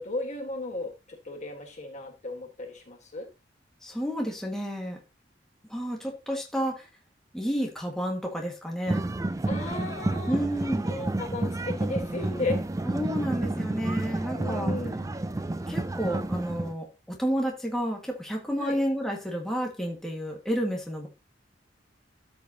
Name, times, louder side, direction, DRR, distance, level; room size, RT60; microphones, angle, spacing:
voice 1, 0.0-3.3 9.5-10.4 10.8-12.6 14.0-15.1 18.6-18.8, left 2 dB, 40° left, 3 dB, 1.6 m, -35 dB
voice 2, 3.8-5.0 5.7-6.9 7.3-9.1 10.3-10.8 12.8-14.7 15.7-21.1, equal, 5° left, 0 dB, 1.8 m, -31 dB
sound 1, 8.9-16.7, right 2 dB, 20° right, 0.4 m, -30 dB
13.0 x 5.2 x 2.9 m, 0.28 s
head